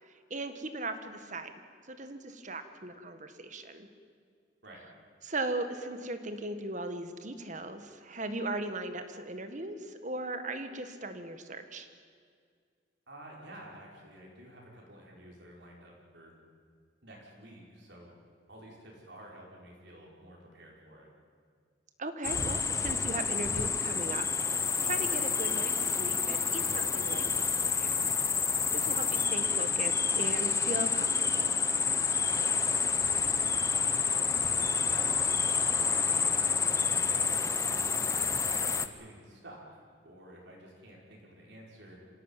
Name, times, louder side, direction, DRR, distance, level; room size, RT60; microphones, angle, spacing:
voice 1, 0.0-1.5 1.9-3.9 5.2-11.9 22.0-28.2 28.7-31.6, right 2 dB, 40° right, 9 dB, 1.7 m, -38 dB
voice 2, 13.1-16.4 17.0-18.1 18.5-21.1 32.3-32.6 34.0-34.3 34.9-35.2 35.6-37.9 38.3-42.1, right 1 dB, 60° right, -2 dB, 5.4 m, -50 dB
sound 1, 22.2-38.9, left 5 dB, 15° left, 0.8 m, -29 dB
26.0 x 17.0 x 9.1 m, 2.1 s
head